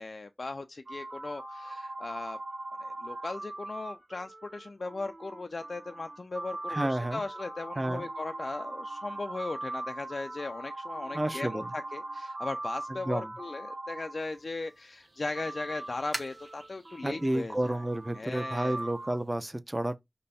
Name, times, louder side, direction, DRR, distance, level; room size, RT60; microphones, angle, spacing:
voice 1, 0.0-2.4 2.8-17.8 18.1-18.9, left 3 dB, 80° left, 0.3 m, -38 dB
sound 1, 0.9-14.7 15.3-19.2, right 2 dB, 65° right, 0.9 m, -40 dB
voice 2, 6.7-7.2 7.8-8.0 11.1-11.6 13.1-13.3 17.0-20.0, right 1 dB, 25° right, 0.5 m, -31 dB
sound 2, 14.2-19.4, right 2 dB, 50° right, 1.2 m, -47 dB
5.3 x 2.1 x 4.1 m
wide cardioid pair, 65°, 0 cm